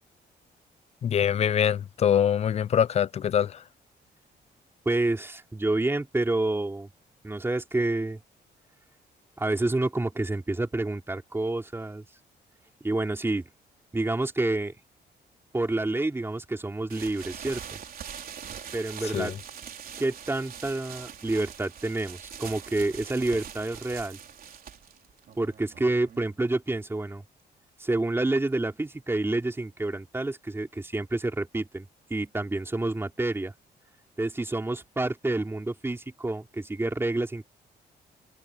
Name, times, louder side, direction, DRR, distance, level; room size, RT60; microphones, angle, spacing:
voice 1, 1.0-3.6 19.1-19.3, left 9 dB, 40° left, 0.4 m, -24 dB
voice 2, 4.9-6.9 7.2-8.2 9.4-12.0 12.8-13.4 13.9-14.8 15.5-17.6 18.7-19.4 20.0-24.2 25.4-27.2 27.8-33.5 34.2-37.5, right 2 dB, 15° right, 3.7 m, -28 dB
sound 1, 16.9-26.5, right 8 dB, 55° right, 3.9 m, -43 dB
cardioid pair, 120°, 18 cm